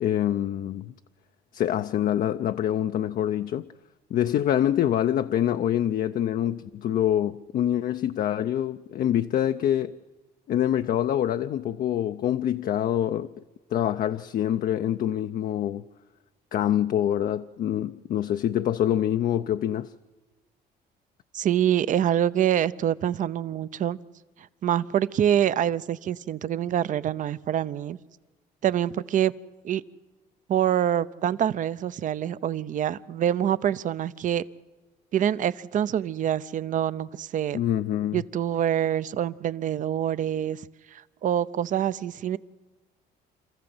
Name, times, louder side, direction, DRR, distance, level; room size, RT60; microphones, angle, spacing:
voice 1, 0.0-0.9 1.5-3.7 4.1-10.0 10.5-13.3 13.7-15.8 16.5-19.9 37.5-38.2, left 11 dB, 55° left, 0.6 m, -25 dB
voice 2, 21.3-24.0 24.4-28.0 28.6-29.3 29.6-29.8 30.5-34.4 35.1-37.6 38.1-40.7 40.9-42.4, right 10 dB, 50° right, 0.7 m, -25 dB
27.0 x 14.0 x 7.9 m
cardioid pair, 110°, 17 cm